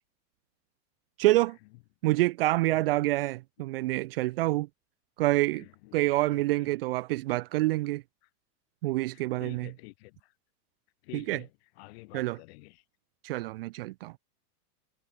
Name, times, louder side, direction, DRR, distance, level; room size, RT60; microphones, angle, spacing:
voice 1, 1.2-1.6 2.0-4.7 5.2-5.6 5.9-8.0 8.8-9.7 11.1-11.4 12.1-12.4 13.2-14.1, right 18 dB, 40° right, 0.8 m, -27 dB
voice 2, 5.5-6.7 8.2-8.3 9.1-10.3 11.0-12.8, left 24 dB, 40° left, 4.7 m, -50 dB
supercardioid pair, 180°, 47 cm